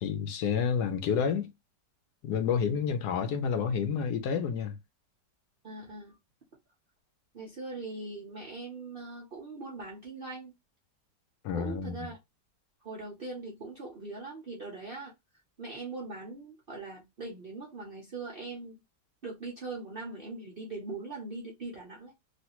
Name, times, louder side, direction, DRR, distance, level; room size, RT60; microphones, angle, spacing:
voice 1, 0.0-1.5 2.2-4.7 11.4-11.9, left 7 dB, 70° left, 1.1 m, -29 dB
voice 2, 5.6-6.2 7.3-10.5 11.5-12.2 12.8-15.1 15.6-18.8 19.2-22.1, right 3 dB, 55° right, 0.6 m, -41 dB
3.0 x 2.6 x 2.9 m
omnidirectional pair, 1.9 m